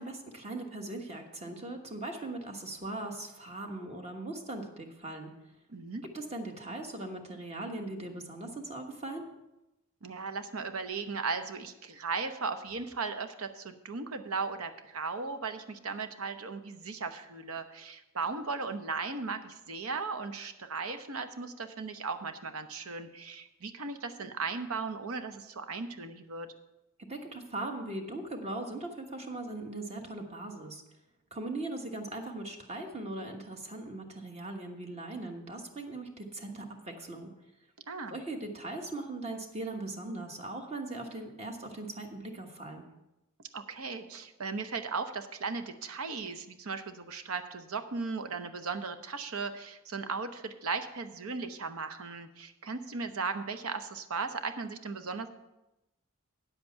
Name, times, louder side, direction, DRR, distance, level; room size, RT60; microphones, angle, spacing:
voice 1, 0.0-5.3 6.0-9.3 27.1-30.8 31.3-37.3 38.1-42.8, right 2 dB, 30° right, 4 dB, 1.2 m, -39 dB
voice 2, 5.7-6.1 10.0-26.5 37.9-38.2 43.5-55.3, right 4 dB, 80° right, 9 dB, 0.9 m, -37 dB
9.4 x 8.0 x 5.7 m, 0.94 s
head